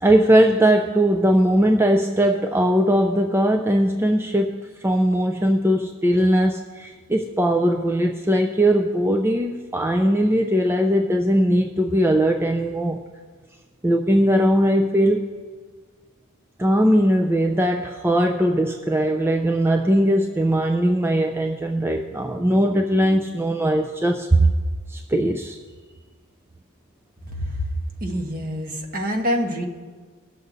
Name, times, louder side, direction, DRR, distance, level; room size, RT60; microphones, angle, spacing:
voice 1, 0.0-13.0 13.8-15.2 16.6-24.5 24.9-25.6, right 1 dB, 10° right, 4 dB, 0.4 m, -19 dB
voice 2, 27.2-27.7 28.0-29.7, equal, 45° right, 3 dB, 1.4 m, -26 dB
20.0 x 6.7 x 4.0 m, 1.5 s
head